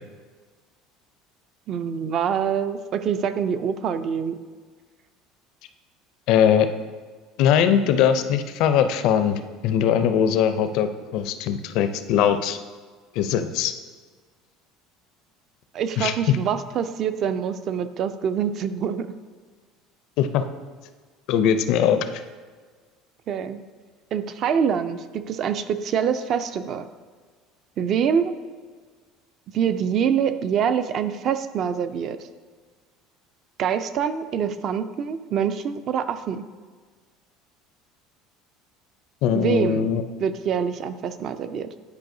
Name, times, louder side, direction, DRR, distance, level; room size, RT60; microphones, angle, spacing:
voice 1, 1.7-4.4 15.7-19.1 23.3-23.6 24.1-26.8 27.8-28.4 29.5-32.2 33.6-36.4 39.3-39.9 40.2-41.7, right 7 dB, 40° right, 11 dB, 0.4 m, -25 dB
voice 2, 6.3-6.7 7.4-12.6 13.1-13.7 16.0-16.4 20.2-20.4 21.3-22.0 39.2-40.0, left 8 dB, 60° left, 10 dB, 0.4 m, -21 dB
10.5 x 4.7 x 2.6 m, 1.5 s
cardioid pair, 150°, 0 cm